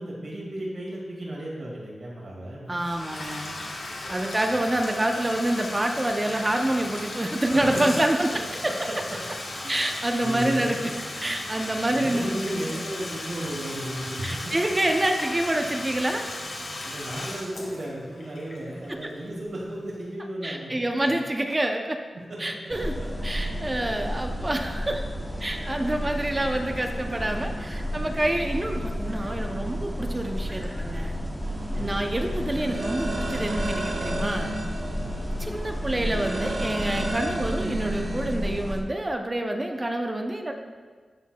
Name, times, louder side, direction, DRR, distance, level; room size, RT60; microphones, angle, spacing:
voice 1, 0.0-2.8 4.3-4.6 7.5-7.8 8.9-9.2 9.5-9.8 10.2-11.0 11.9-14.5 16.8-21.1 22.1-22.7 23.0-23.1 31.7-32.1 34.9-35.3, right 1 dB, 65° right, -4 dB, 2.1 m, -35 dB
Bathtub (filling or washing), 2.7-19.5, left 2 dB, 75° left, 1.4 m, -36 dB
voice 2, 2.7-3.6 4.1-8.3 9.7-10.9 11.2-12.5 14.2-16.3 18.9-19.1 20.4-22.0 22.4-22.9 23.2-25.0 25.4-31.2 31.8-34.5 35.4-40.5, right 1 dB, 25° right, 3 dB, 0.6 m, -27 dB
sound 1, 22.7-38.8, equal, 5° left, 0.9 m, -32 dB
sound 2, 31.4-38.3, right 1 dB, 80° right, 1.1 m, -33 dB
12.5 x 4.6 x 2.3 m, 1.5 s
cardioid pair, 70°, 0 cm